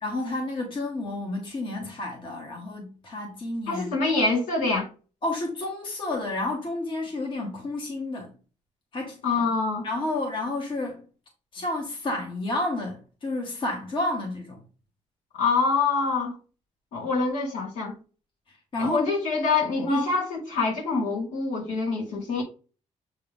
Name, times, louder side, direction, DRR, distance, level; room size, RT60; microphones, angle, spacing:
voice 1, 0.0-4.0 5.2-8.3 8.9-9.2 9.8-11.1 11.5-14.6 18.7-19.1 19.9-20.1, left 2 dB, 40° left, 1.7 m, -30 dB
voice 2, 3.7-4.9 9.2-9.9 15.4-16.4 16.9-18.0 18.8-22.4, left 4 dB, 80° left, 2.9 m, -25 dB
7.4 x 3.6 x 3.6 m
cardioid pair, 140°, 13 cm